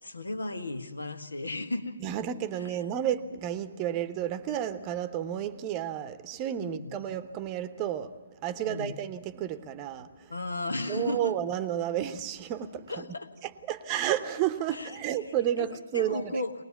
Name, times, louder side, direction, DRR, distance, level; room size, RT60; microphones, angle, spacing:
voice 1, 0.0-2.0 2.5-2.9 6.6-7.0 8.6-9.0 10.3-11.3 12.9-13.3 14.7-15.2 15.6-15.7 15.9-16.5, left 2 dB, 80° left, 1.6 m, -35 dB
voice 2, 2.0-8.1 8.4-10.1 10.9-13.0 13.7-16.4, right 10 dB, 25° right, 0.9 m, -31 dB
22.0 x 19.5 x 7.1 m
figure-of-eight pair, 140°, 0 cm